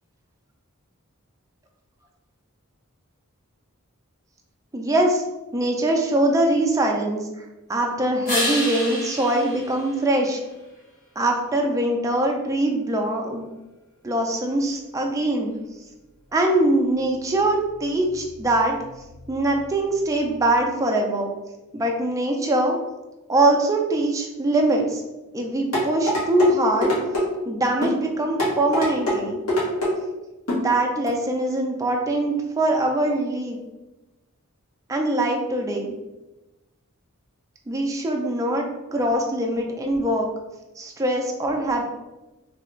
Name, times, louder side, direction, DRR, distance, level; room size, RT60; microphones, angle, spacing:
voice 1, 4.7-5.2 5.5-7.3 7.7-10.4 11.2-13.5 14.0-15.5 16.3-18.8 19.3-21.3 21.7-22.8 23.3-25.0 25.3-27.0 27.5-29.4 30.5-33.6 34.9-35.9 37.7-40.3 40.8-41.8, right 1 dB, 15° right, 1 dB, 0.4 m, -22 dB
sound 1, 8.3-10.8 16.6-20.6, left 1 dB, 40° left, 1.3 m, -33 dB
sound 2, 25.7-26.5 26.8-27.3 27.8-28.0 28.4-29.2 29.5-29.9 30.5-30.7 31.1-31.2, equal, 90° left, 1.3 m, -22 dB
3.3 x 2.4 x 3.0 m, 1.0 s
head